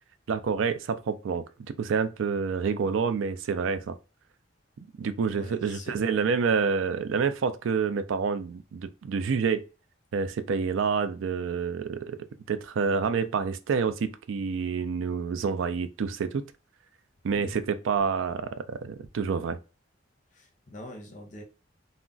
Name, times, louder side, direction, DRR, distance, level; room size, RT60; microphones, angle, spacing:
voice 1, 0.3-1.4 1.8-4.0 5.0-9.6 10.1-12.2 12.5-16.4 17.2-19.6, right 5 dB, 85° right, 0.4 m, -28 dB
voice 2, 5.3-6.0 17.3-17.6 20.3-21.4, left 1 dB, 40° left, 0.7 m, -44 dB
2.3 x 2.1 x 3.7 m
head